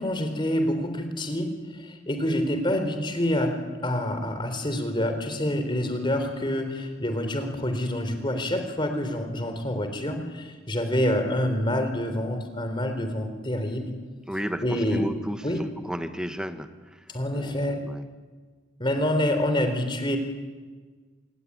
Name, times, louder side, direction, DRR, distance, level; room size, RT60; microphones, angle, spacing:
voice 1, 0.0-3.6 3.8-13.9 14.6-15.0 15.4-15.6 17.1-17.8 18.8-20.2, left 1 dB, 25° left, 6 dB, 3.9 m, -27 dB
voice 2, 14.3-17.1 17.3-18.1, equal, 5° right, 8 dB, 1.5 m, -34 dB
28.0 x 20.5 x 9.9 m, 1.4 s
head